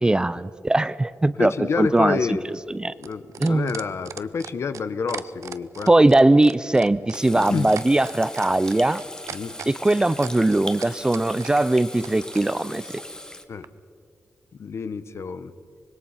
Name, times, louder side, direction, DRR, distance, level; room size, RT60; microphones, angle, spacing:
voice 1, 0.0-1.5 1.8-2.2 2.7-2.9 3.4-3.7 5.9-9.0 9.7-12.8, right 2 dB, 15° right, 17 dB, 0.4 m, -20 dB
voice 2, 1.4-2.4 3.0-5.9 7.3-7.7 9.3-9.5 13.5-13.7 14.6-15.5, left 5 dB, 60° left, 13 dB, 0.9 m, -28 dB
sound 1, 1.9-12.5 13.6-13.7, right 8 dB, 85° right, 0.6 m, -38 dB
Water tap faucet / Sink (filling or washing), 7.1-13.4, left 1 dB, 15° left, 1.1 m, -39 dB
25.0 x 20.5 x 5.7 m, 2.3 s
wide cardioid pair, 125°, 5 cm